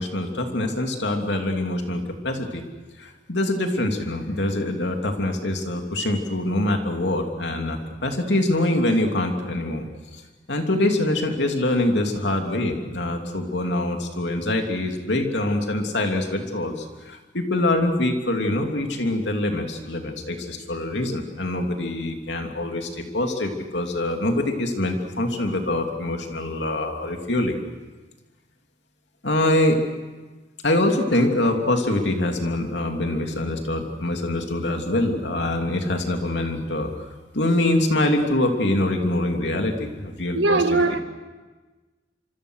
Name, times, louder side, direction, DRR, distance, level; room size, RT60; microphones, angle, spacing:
voice 1, 0.0-2.6 3.0-9.8 10.5-27.6 29.2-29.8 30.6-36.9 37.3-41.0, left 1 dB, 70° left, 3.0 m, -24 dB
voice 2, 40.3-41.0, right 3 dB, 85° right, 1.7 m, -20 dB
26.0 x 25.0 x 6.6 m
head